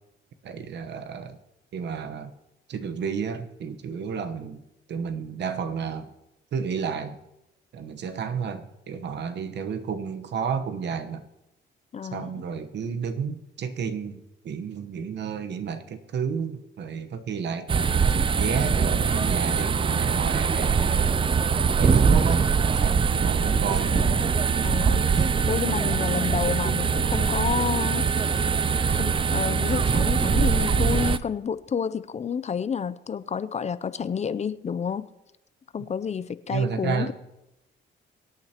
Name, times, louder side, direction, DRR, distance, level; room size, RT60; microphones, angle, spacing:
voice 1, 0.4-1.4 1.7-2.3 2.7-6.1 6.5-7.2 7.7-11.3 12.1-17.8 18.4-21.0 21.8-22.4 22.8-24.0 36.5-37.1, right 6 dB, 60° right, 8 dB, 1.0 m, -31 dB
voice 2, 11.9-12.3 23.9-24.3 24.6-35.1 35.7-37.1, left 7 dB, 35° left, 15 dB, 0.5 m, -30 dB
sound 1, 17.7-31.2, right 6 dB, 25° right, 0.5 m, -22 dB
24.0 x 8.7 x 2.9 m, 0.92 s
cardioid pair, 90°, 20 cm